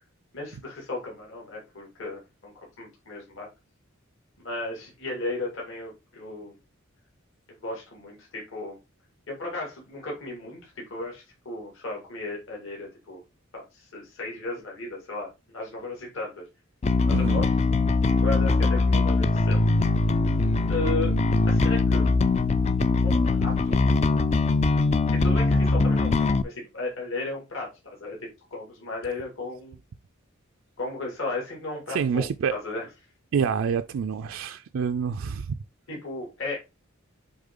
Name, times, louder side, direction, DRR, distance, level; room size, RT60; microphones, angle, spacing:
voice 1, 0.3-3.5 4.4-6.6 7.5-8.8 9.3-13.2 13.5-16.4 17.0-17.5 18.2-19.6 20.7-21.1 21.5-22.1 23.0-23.8 25.1-29.8 30.8-32.9 35.9-36.6, left 2 dB, 65° left, 2.3 m, -35 dB
Bass guitar, 16.8-26.4, left 3 dB, 30° left, 0.3 m, -22 dB
voice 2, 17.1-17.4 31.9-32.6 33.3-35.6, right 6 dB, 70° right, 0.4 m, -27 dB
7.1 x 3.6 x 3.7 m
head